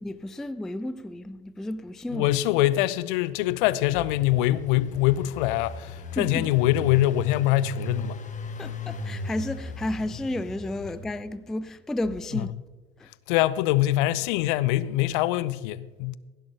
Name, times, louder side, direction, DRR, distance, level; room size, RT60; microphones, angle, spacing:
voice 1, 0.0-2.3 6.2-6.5 8.6-12.5 13.0-13.1, left 1 dB, ahead, 0.3 m, -32 dB
voice 2, 2.1-8.2 12.3-12.4 13.3-16.2, left 15 dB, 60° left, 0.6 m, -24 dB
Engine, 3.4-11.4, left 2 dB, 25° left, 1.6 m, -38 dB
16.5 x 10.5 x 3.3 m
figure-of-eight pair, 75°, 30 cm